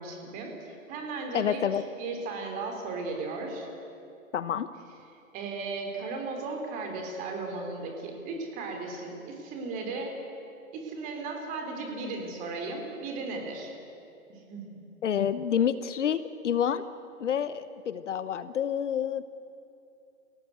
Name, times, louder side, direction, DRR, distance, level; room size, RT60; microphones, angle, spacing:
voice 1, 0.0-1.6 2.0-3.7 5.3-10.2 10.7-13.7 14.3-14.7, right 3 dB, 20° right, 3 dB, 3.6 m, -36 dB
voice 2, 1.3-1.8 4.3-4.7 15.0-16.8 17.2-19.2, left 8 dB, 60° left, 13 dB, 1.0 m, -28 dB
28.5 x 17.5 x 8.0 m, 2.6 s
hypercardioid pair, 160°, 42 cm